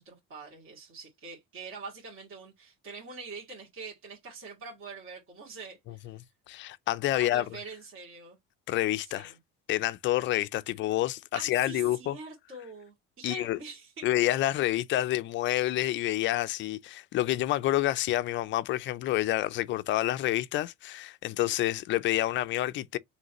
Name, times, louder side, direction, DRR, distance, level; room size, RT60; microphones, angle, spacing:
voice 1, 0.0-6.2 7.1-8.4 9.0-9.3 11.3-14.1, right 4 dB, 45° right, 2.3 m, -44 dB
voice 2, 6.5-7.4 8.7-9.3 9.7-12.2 13.2-13.6 14.0-23.0, left 15 dB, 40° left, 0.4 m, -28 dB
5.1 x 3.2 x 2.9 m
cardioid pair, 165°, 30 cm